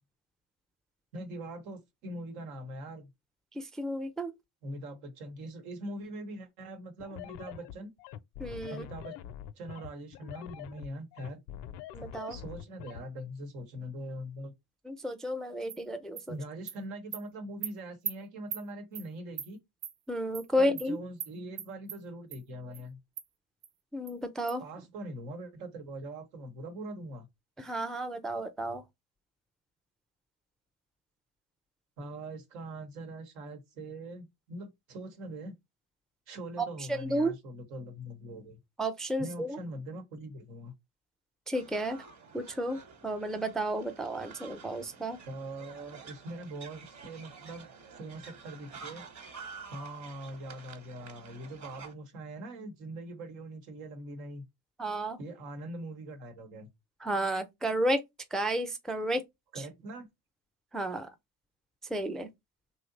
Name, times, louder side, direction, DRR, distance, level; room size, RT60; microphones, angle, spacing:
voice 1, 1.1-3.1 4.6-7.9 8.7-9.2 9.5-11.4 12.3-14.5 16.3-19.6 20.6-23.0 24.6-27.3 32.0-35.6 36.3-38.6 39.2-40.7 45.3-47.7 47.9-49.1 49.7-54.4 55.2-56.7 59.5-60.1, right 1 dB, 85° right, 1.1 m, -42 dB
voice 2, 3.6-4.3 8.4-8.8 11.9-12.4 14.9-16.4 20.1-21.0 23.9-24.6 27.6-28.8 36.6-37.3 38.8-39.6 41.5-42.0 42.3-45.2 54.8-55.2 57.0-58.0 58.3-59.2 60.7-61.1 61.9-62.3, right 1 dB, ahead, 0.3 m, -32 dB
sound 1, 7.0-13.0, left 11 dB, 65° left, 0.5 m, -44 dB
Animal, 15.7-15.8 16.2-16.3 16.7-16.8 17.1-17.2 17.6-17.7 18.0-18.1 18.5-18.6 18.9-19.1 19.4-19.5 19.8-19.9 20.3-20.5 20.8-20.9 21.2-21.3 21.6-22.0 22.3-22.4 22.7-22.8 23.2-23.3 23.6-23.7 24.1-24.2 24.5-24.6, right 8 dB, 65° right, 0.8 m, -38 dB
sound 2, 41.5-51.9, right 5 dB, 40° right, 1.1 m, -50 dB
2.8 x 2.0 x 3.8 m
hypercardioid pair, 70°, 44 cm